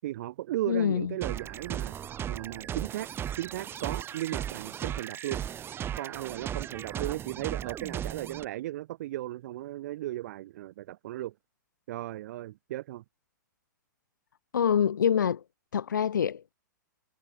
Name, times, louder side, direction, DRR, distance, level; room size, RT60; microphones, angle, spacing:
voice 1, 0.0-3.1 3.4-5.4 6.0-11.3 11.9-13.0, right 15 dB, 55° right, 7.0 m, -36 dB
voice 2, 0.7-1.1 14.5-15.4 15.7-16.5, left 8 dB, 70° left, 1.6 m, -25 dB
sound 1, 1.2-8.5, right 10 dB, 20° right, 2.9 m, -36 dB
figure-of-eight pair, 115°, 11 cm